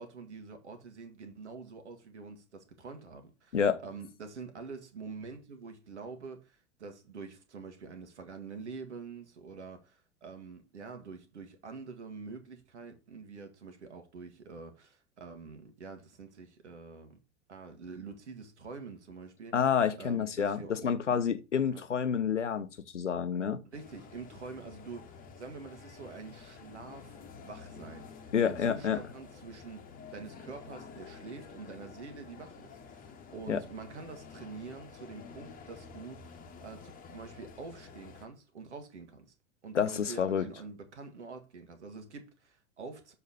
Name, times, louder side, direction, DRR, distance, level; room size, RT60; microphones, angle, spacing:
voice 1, 0.0-17.2 17.5-19.5 20.0-21.2 21.7-21.8 23.6-39.3 39.6-43.1, right 4 dB, 70° right, 1.7 m, -46 dB
voice 2, 19.5-22.7 22.9-23.6 28.3-29.0 33.5-33.6 39.7-40.5, left 7 dB, 80° left, 0.8 m, -28 dB
sound 1, 23.7-38.3, left 5 dB, 25° left, 1.1 m, -50 dB
6.8 x 4.9 x 4.0 m
figure-of-eight pair, 90°, 36 cm